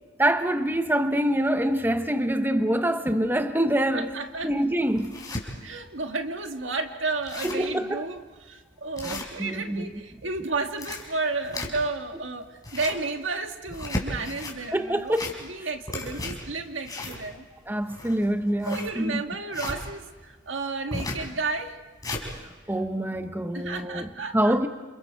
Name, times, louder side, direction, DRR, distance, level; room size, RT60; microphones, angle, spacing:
voice 1, 0.2-4.1 4.4-5.2 7.4-8.1 9.0-9.9 14.7-15.3 17.7-19.2 22.4-24.7, right 1 dB, 10° right, 0.9 m, -25 dB
voice 2, 3.9-4.5 5.6-15.1 15.4-17.5 18.7-21.8 23.5-24.6, right 3 dB, 85° right, 1.8 m, -32 dB
sound 1, 4.1-4.2 4.7-5.4 6.0-6.1 6.4-6.5 6.8-6.9 7.1-7.7 8.2-8.3 9.0-9.8 10.5-12.0 12.5-13.1 13.6-14.6 15.0-15.6 15.9-19.8 20.9-21.3 21.7-22.3, left 2 dB, 20° left, 4.1 m, -34 dB
28.5 x 28.5 x 4.6 m
head